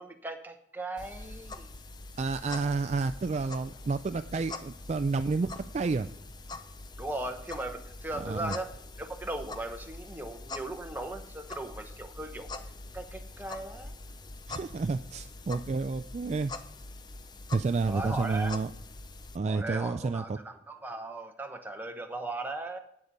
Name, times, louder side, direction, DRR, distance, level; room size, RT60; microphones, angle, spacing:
voice 1, 0.0-1.7 7.0-8.7 9.0-12.5 12.9-13.9 17.9-18.5 19.5-22.8, right 2 dB, 10° right, 4 dB, 1.0 m, -38 dB
sound 1, 1.0-19.4, left 2 dB, 25° left, 0.5 m, -44 dB
voice 2, 2.2-6.1 8.1-8.6 14.5-16.5 17.5-18.7 19.3-20.4, right 4 dB, 40° right, 10 dB, 0.3 m, -30 dB
8.8 x 8.0 x 5.3 m, 0.77 s
head